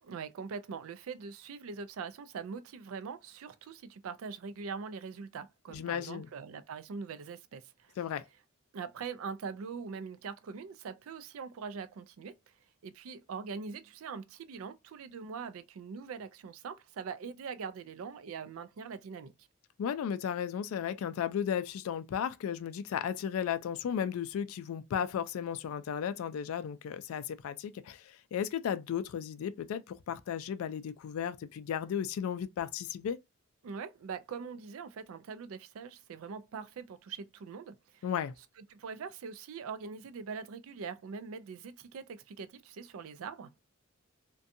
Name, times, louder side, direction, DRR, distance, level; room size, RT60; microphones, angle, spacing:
voice 1, 0.0-7.9 8.7-12.5 12.8-19.3 33.6-38.1 38.7-43.5, right 5 dB, 80° right, 0.4 m, -42 dB
voice 2, 5.7-6.3 8.0-8.2 19.8-33.2 38.0-38.3, left 8 dB, 85° left, 0.3 m, -35 dB
2.6 x 2.2 x 2.5 m
head